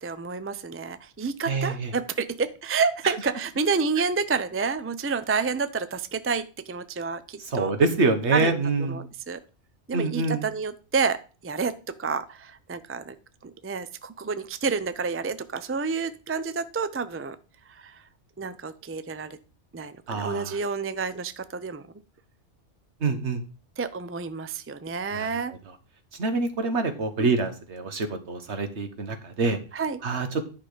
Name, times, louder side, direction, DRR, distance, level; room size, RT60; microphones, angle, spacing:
voice 1, 0.0-7.7 8.3-8.6 8.9-9.4 9.9-13.1 13.4-17.4 17.7-18.0 18.4-19.4 19.7-21.8 23.8-25.5 27.2-27.3 29.7-30.0, right 5 dB, 20° right, 12 dB, 0.4 m, -29 dB
voice 2, 1.5-1.9 7.5-9.0 9.9-10.4 20.1-20.6 23.0-23.4 25.1-25.3 26.2-29.6 30.0-30.4, right 3 dB, 70° right, 7 dB, 1.6 m, -26 dB
11.0 x 5.8 x 5.0 m, 0.34 s
omnidirectional pair, 1.2 m